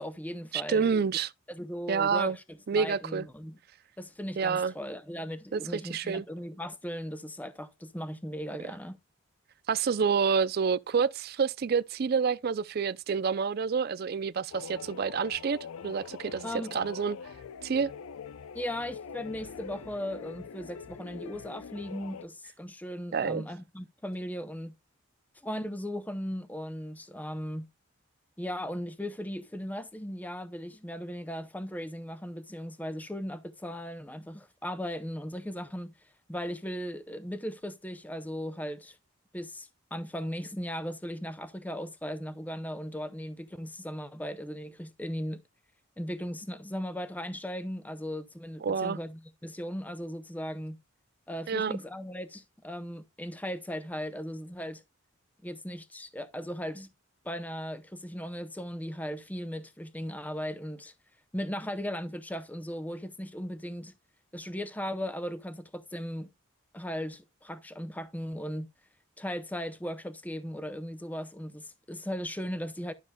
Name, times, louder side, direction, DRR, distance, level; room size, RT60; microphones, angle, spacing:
voice 1, 0.0-1.0 1.5-2.4 2.7-3.6 4.0-9.0 16.4-16.7 18.5-24.7 25.4-27.7 28.4-35.9 36.3-39.0 39.3-45.4 46.0-50.8 51.3-54.8 55.4-56.9 57.2-60.9 61.3-63.9 64.3-66.3 66.7-68.7 69.2-72.9, equal, 5° left, 0.5 m, -37 dB
voice 2, 0.5-1.3 1.9-2.4 2.7-3.3 4.4-4.7 5.5-6.2 9.7-15.6 15.8-17.2 17.6-17.9 23.1-23.5 48.6-49.0 51.5-51.7, right 6 dB, 45° right, 0.4 m, -28 dB
sound 1, 14.5-22.3, left 6 dB, 80° left, 0.5 m, -44 dB
12.0 x 6.6 x 2.2 m
head